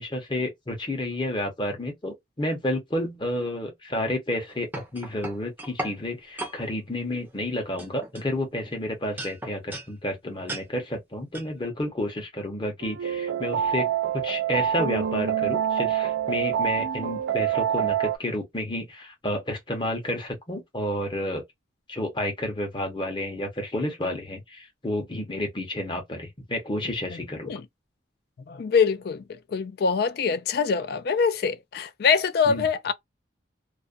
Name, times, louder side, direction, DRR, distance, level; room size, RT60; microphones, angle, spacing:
voice 1, 0.0-21.4 21.9-27.6 32.5-32.6, left 1 dB, 25° left, 0.8 m, -30 dB
sound 1, 4.3-6.0 6.4-6.6 7.2-7.5 7.8-8.7 9.2-9.9 10.5-10.7 11.3-11.5, right 1 dB, 10° right, 0.5 m, -36 dB
sound 2, 12.8-18.2, right 9 dB, 70° right, 0.3 m, -26 dB
voice 2, 28.5-32.9, left 5 dB, 55° left, 0.3 m, -24 dB
2.4 x 2.1 x 2.4 m
head